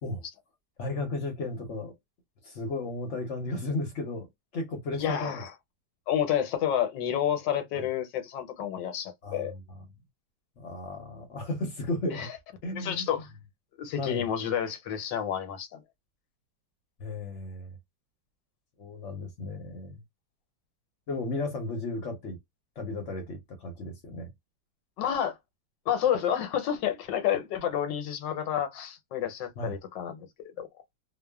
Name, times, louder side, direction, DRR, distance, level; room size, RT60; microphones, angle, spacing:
voice 1, 0.8-1.9 2.4-4.3 4.5-5.4 7.7-7.8 9.2-9.6 10.6-12.3 12.6-13.1 14.0-14.2 17.0-17.8 18.8-20.0 21.1-22.4 22.8-24.3 29.6-29.8, left 2 dB, 55° left, 0.8 m, -34 dB
voice 2, 4.9-5.5 6.1-9.5 12.1-12.3 12.7-13.3 13.8-15.8 25.0-25.4 25.9-30.3 30.6-30.7, left 9 dB, 80° left, 1.3 m, -30 dB
3.0 x 2.1 x 2.2 m
omnidirectional pair, 2.0 m